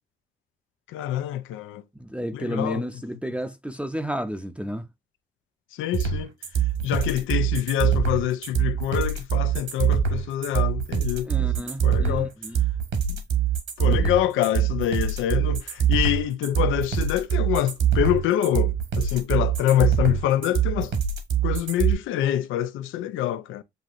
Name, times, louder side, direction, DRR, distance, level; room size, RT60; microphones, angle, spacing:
voice 1, 0.9-1.8 2.3-2.8 5.7-6.3 6.8-11.5 11.8-12.3 13.1-13.2 13.8-20.9 21.4-23.6, left 12 dB, 85° left, 0.5 m, -26 dB
voice 2, 2.0-4.9 11.2-12.6 13.9-14.1, equal, 5° right, 0.5 m, -32 dB
sound 1, 5.9-21.9, right 8 dB, 70° right, 1.4 m, -23 dB
7.6 x 2.7 x 2.5 m
cardioid pair, 90°, 20 cm